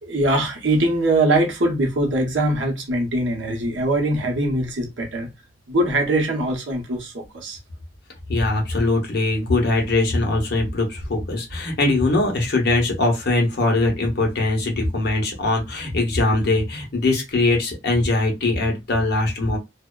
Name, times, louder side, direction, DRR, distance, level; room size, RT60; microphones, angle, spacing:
voice 1, 0.0-5.3 5.7-7.6, right 1 dB, 85° right, 0.8 m, -22 dB
voice 2, 8.3-19.6, left 2 dB, 60° left, 0.9 m, -21 dB
2.6 x 2.1 x 2.2 m
head